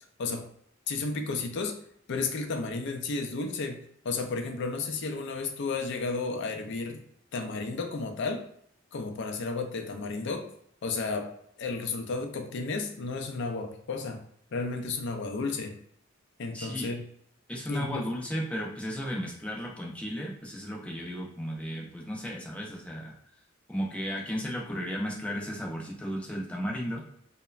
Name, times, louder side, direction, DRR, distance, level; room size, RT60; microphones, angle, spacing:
voice 1, 0.9-1.8 2.1-7.0 7.3-8.5 8.9-10.5 10.8-14.2 14.5-15.8 16.4-17.0 17.7-18.0, left 4 dB, 60° left, 5 dB, 0.4 m, -33 dB
voice 2, 16.5-16.9 17.5-23.1 23.7-27.0, equal, 5° left, -2 dB, 0.5 m, -34 dB
3.0 x 2.1 x 2.3 m, 0.68 s
head